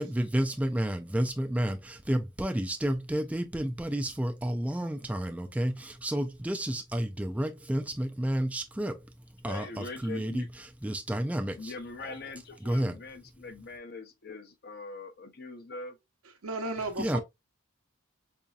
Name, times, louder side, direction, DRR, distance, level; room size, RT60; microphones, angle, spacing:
voice 1, 0.0-1.8 2.1-9.1 9.4-11.7 12.6-13.0 17.0-17.2, right 1 dB, 5° right, 0.3 m, -31 dB
voice 2, 9.5-10.5 11.6-16.0, left 3 dB, 45° left, 0.6 m, -42 dB
voice 3, 16.2-17.2, right 2 dB, 90° right, 0.8 m, -34 dB
4.8 x 2.7 x 2.3 m
head